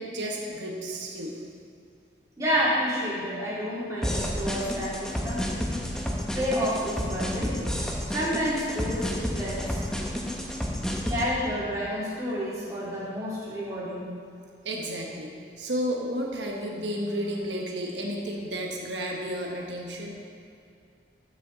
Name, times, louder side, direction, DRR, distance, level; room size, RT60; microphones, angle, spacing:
voice 1, 0.0-1.4 11.0-11.2 14.6-15.3 15.6-20.2, equal, 85° right, 0 dB, 1.1 m, -32 dB
voice 2, 2.4-5.4 6.4-7.6 8.1-9.8 11.1-14.1, equal, 20° right, -8 dB, 2.6 m, -29 dB
sound 1, 4.0-11.3, equal, 5° left, 0.7 m, -30 dB
13.5 x 6.7 x 3.9 m, 2.4 s
head